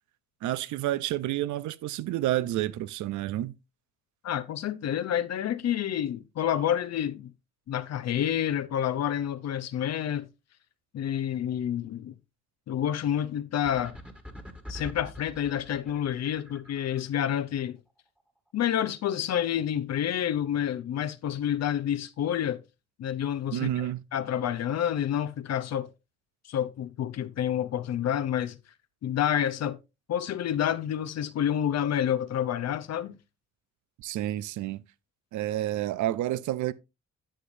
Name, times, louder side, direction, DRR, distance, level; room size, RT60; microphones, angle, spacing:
voice 1, 0.4-3.5 23.5-24.0 34.0-34.8 35.3-36.7, right 14 dB, 75° right, 0.6 m, -29 dB
voice 2, 4.2-7.3 7.7-10.3 10.9-12.1 12.7-14.0 14.7-17.8 18.5-22.6 23.0-25.9 26.5-28.6 29.0-29.8 30.1-33.2, left 10 dB, 60° left, 0.7 m, -29 dB
sound 1, 13.6-17.1, left 1 dB, 5° right, 1.6 m, -44 dB
10.0 x 7.7 x 2.6 m
cardioid pair, 90°, 30 cm